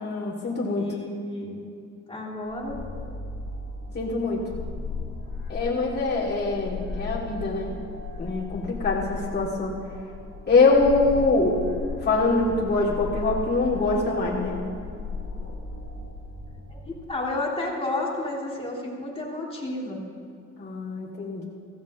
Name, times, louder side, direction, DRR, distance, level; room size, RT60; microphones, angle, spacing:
voice 1, 0.0-0.9 3.9-4.5 5.5-7.8 8.2-9.8 10.5-11.6 12.0-14.6 20.6-21.5, left 3 dB, 35° left, -5 dB, 2.7 m, -24 dB
voice 2, 0.8-1.6 2.1-2.8 16.7-20.1, left 2 dB, 20° left, -3 dB, 3.2 m, -31 dB
sound 1, 2.5-17.0, left 3 dB, 50° left, 2.8 m, -36 dB
16.0 x 15.0 x 3.1 m, 2.4 s
cardioid pair, 90°, 30 cm